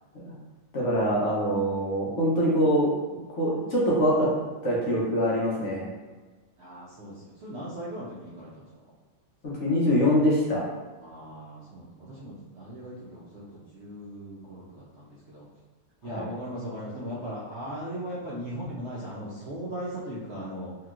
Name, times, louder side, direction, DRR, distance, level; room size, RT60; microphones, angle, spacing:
voice 1, 0.7-2.9 3.3-4.3 4.6-5.9 9.4-10.6 16.0-16.3, equal, 60° left, -5 dB, 1.0 m, -24 dB
voice 2, 6.6-8.7 11.0-15.5 16.0-20.7, equal, 60° right, -7 dB, 0.7 m, -38 dB
3.0 x 2.8 x 2.4 m, 1.3 s
omnidirectional pair, 1.6 m